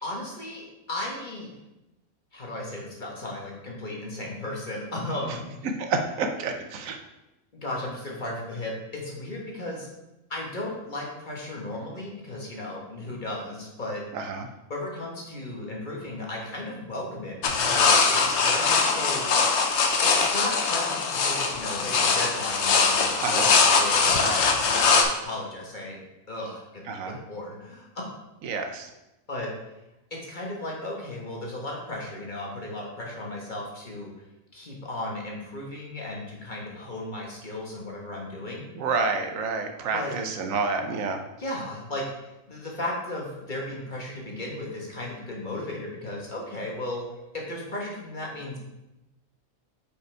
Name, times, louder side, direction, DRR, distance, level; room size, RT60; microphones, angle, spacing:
voice 1, 0.0-1.5 2.3-5.5 7.5-9.9 10.3-14.0 14.7-19.3 20.0-26.0 26.3-28.1 29.3-29.5 30.1-34.1 34.5-38.7 39.9-40.2 41.4-42.0 42.5-47.1 47.3-48.6, left 1 dB, 35° left, -2 dB, 1.3 m, -35 dB
voice 2, 5.8-7.0 14.1-14.5 23.2-23.5 24.2-24.4 26.9-27.2 28.4-28.9 38.7-41.2, right 4 dB, 75° right, 5 dB, 1.1 m, -29 dB
sound 1, 17.4-25.0, left 5 dB, 60° left, 0.9 m, -22 dB
5.3 x 5.1 x 4.4 m, 0.96 s
omnidirectional pair, 1.4 m